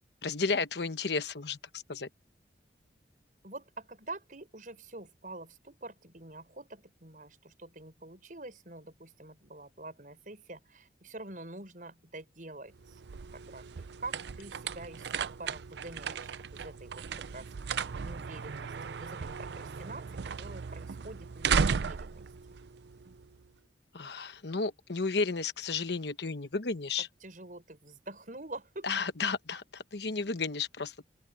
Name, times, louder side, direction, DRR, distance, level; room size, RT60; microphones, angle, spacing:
voice 1, 0.2-2.1 23.9-27.1 28.8-31.0, left 4 dB, 70° left, 1.1 m, -33 dB
voice 2, 3.4-13.0 13.3-22.3 27.2-28.9, right 2 dB, 45° right, 6.3 m, -46 dB
sound 1, 12.7-23.5, right 6 dB, 70° right, 0.5 m, -35 dB
open air
head